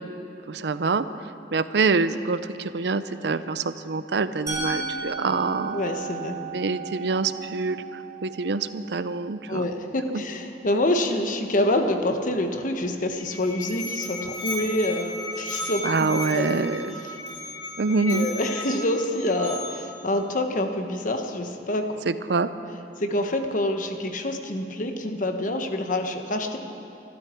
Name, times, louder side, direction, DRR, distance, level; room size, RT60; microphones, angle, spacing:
voice 1, 0.5-1.1 1.5-5.8 6.5-9.7 10.1-10.2 15.8-17.0 17.8-18.3 22.1-22.5, right 4 dB, 70° right, 13 dB, 0.5 m, -25 dB
Musical instrument, 4.5-10.4, right 4 dB, 20° right, 4.0 m, -35 dB
voice 2, 5.7-6.4 9.5-16.6 17.0-17.2 18.1-22.0 22.4-22.5 23.0-26.6, left 1 dB, 50° left, 5 dB, 1.2 m, -27 dB
Musical instrument 2, 13.1-20.0, left 2 dB, 80° left, 4.3 m, -35 dB
25.0 x 12.5 x 4.5 m, 2.8 s
head